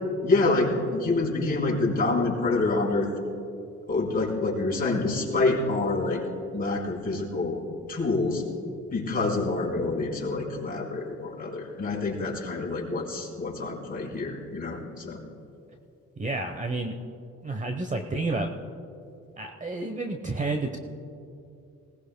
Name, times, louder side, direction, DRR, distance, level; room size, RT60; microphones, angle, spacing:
voice 1, 0.2-3.1 3.9-6.2 6.5-7.6 7.9-8.4 8.9-15.2, left 3 dB, 30° left, -4 dB, 4.0 m, -27 dB
voice 2, 16.2-17.0 17.4-18.5 19.4-20.8, right 2 dB, 25° right, 4 dB, 1.0 m, -30 dB
20.0 x 18.5 x 2.2 m, 2.6 s
cardioid pair, 90°, 30 cm